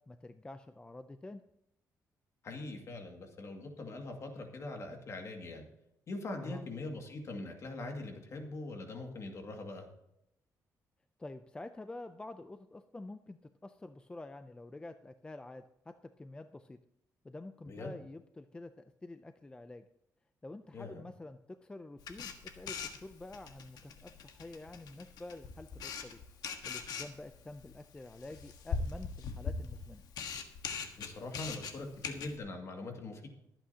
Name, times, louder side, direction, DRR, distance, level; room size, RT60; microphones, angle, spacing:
voice 1, 0.1-1.4 6.4-6.6 11.2-16.8 17.2-19.8 20.4-26.2 26.6-30.0, left 2 dB, 15° left, 9 dB, 0.4 m, -48 dB
voice 2, 2.4-5.7 6.1-9.9 17.6-17.9 20.7-21.0 31.0-33.3, left 2 dB, 50° left, 3 dB, 2.2 m, -42 dB
Camera, 22.0-32.4, left 5 dB, 80° left, 1.4 m, -41 dB
24.0 x 8.9 x 2.8 m, 0.82 s
cardioid pair, 140°, 7 cm